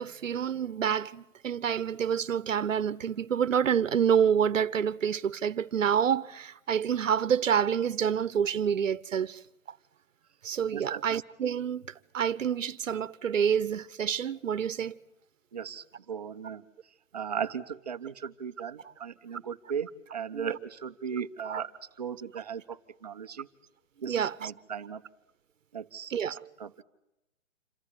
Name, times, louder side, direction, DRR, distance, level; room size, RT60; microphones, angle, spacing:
voice 1, 0.0-9.4 10.4-11.9 12.1-15.0 18.8-18.9 20.3-20.6 21.4-21.6 24.1-24.5 26.1-26.5, right 8 dB, 75° right, 1.1 m, -28 dB
voice 2, 10.7-11.0 15.5-16.6 17.1-21.7 22.0-23.5 24.0-25.0 25.7-26.1 26.6-26.7, right 7 dB, 30° right, 0.9 m, -37 dB
27.5 x 14.0 x 9.8 m
hypercardioid pair, 175°, 38 cm